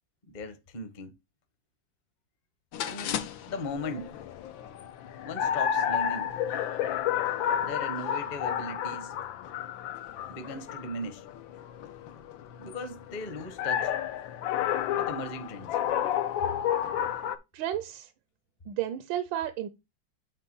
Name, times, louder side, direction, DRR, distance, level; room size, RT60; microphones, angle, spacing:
voice 1, 0.3-1.1 2.8-4.2 5.2-6.3 7.6-9.1 10.3-11.2 12.6-13.9 14.9-15.7, left 2 dB, 40° left, 0.6 m, -38 dB
sound 1, 2.7-17.4, left 9 dB, 90° left, 1.5 m, -31 dB
voice 2, 17.5-18.1 18.7-19.7, right 12 dB, 85° right, 1.4 m, -32 dB
8.2 x 3.2 x 5.4 m
omnidirectional pair, 2.0 m